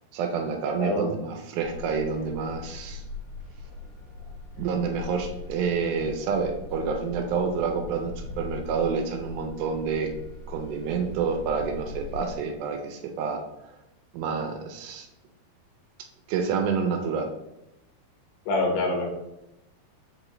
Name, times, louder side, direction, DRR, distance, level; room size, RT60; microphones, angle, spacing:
voice 1, 0.1-3.0 4.6-10.1 10.5-13.4 14.1-15.1 16.3-17.3, right 5 dB, 80° right, 5 dB, 2.3 m, -28 dB
voice 2, 0.8-1.1 18.5-19.1, left 2 dB, 85° left, 1 dB, 3.3 m, -25 dB
sound 1, 1.6-12.4, left 3 dB, 60° left, 3.6 m, -41 dB
7.8 x 4.0 x 3.0 m, 0.88 s
omnidirectional pair, 4.6 m